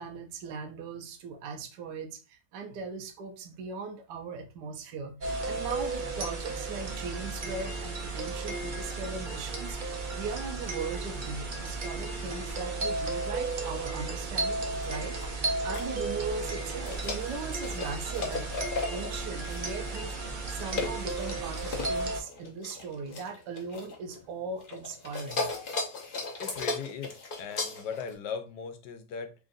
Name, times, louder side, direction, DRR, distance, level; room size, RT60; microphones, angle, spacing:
voice 1, 0.0-9.8 10.1-18.5 18.9-20.2 20.5-25.5, right 4 dB, 75° right, 1.3 m, -39 dB
sound 1, 5.2-22.2, right 3 dB, 60° right, 0.5 m, -34 dB
sound 2, 14.7-15.9 16.4-24.3 24.6-28.1, left 3 dB, 45° left, 0.7 m, -37 dB
voice 2, 26.4-29.3, left 6 dB, 80° left, 1.2 m, -39 dB
3.7 x 2.5 x 3.8 m
omnidirectional pair, 1.8 m